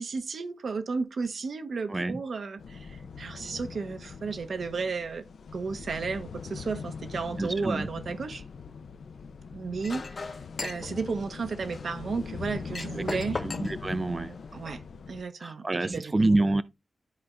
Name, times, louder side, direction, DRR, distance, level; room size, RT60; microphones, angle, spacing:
voice 1, 0.0-5.2 5.5-8.4 9.5-10.3 10.6-13.4 14.5-14.8 15.1-16.5, right 4 dB, 75° right, 0.9 m, -33 dB
voice 2, 1.9-2.2 7.4-7.9 12.9-13.0 13.3-14.4 15.4-16.6, right 2 dB, 25° right, 0.3 m, -27 dB
sound 1, 2.6-15.2, left 5 dB, 85° left, 0.5 m, -41 dB
Chink clink, 9.8-14.8, left 3 dB, 50° left, 0.9 m, -40 dB
13.0 x 4.3 x 2.4 m
wide cardioid pair, 105°, 0 cm